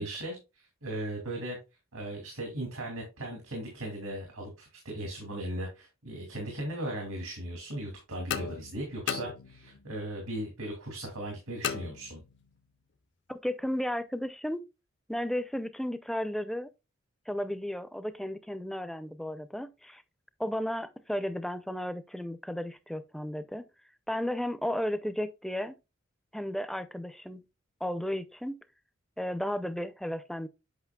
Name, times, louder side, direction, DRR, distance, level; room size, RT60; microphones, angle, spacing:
voice 1, 0.0-1.6 1.9-12.2, right 1 dB, 85° right, 2.3 m, -38 dB
sound 1, 8.3-9.9 11.6-12.6, left 8 dB, 55° left, 0.5 m, -37 dB
voice 2, 13.3-14.6 15.1-16.7 17.3-20.0 20.4-23.6 24.1-25.8 26.3-27.4 27.8-28.6 29.2-30.5, equal, ahead, 0.4 m, -34 dB
8.2 x 5.7 x 2.2 m
head